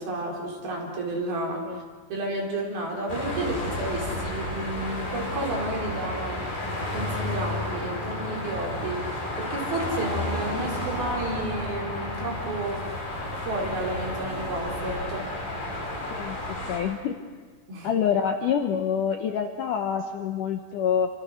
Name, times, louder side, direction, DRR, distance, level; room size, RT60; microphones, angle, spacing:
voice 1, 0.0-1.8 2.1-12.8 13.4-15.3 17.7-17.9, right 2 dB, 60° right, -1 dB, 6.0 m, -32 dB
sound 1, 3.1-16.8, left 1 dB, 55° left, 7.6 m, -32 dB
voice 2, 16.1-17.2 17.8-21.1, left 8 dB, 70° left, 5 dB, 2.1 m, -26 dB
29.5 x 26.0 x 6.4 m, 1.5 s
omnidirectional pair, 4.9 m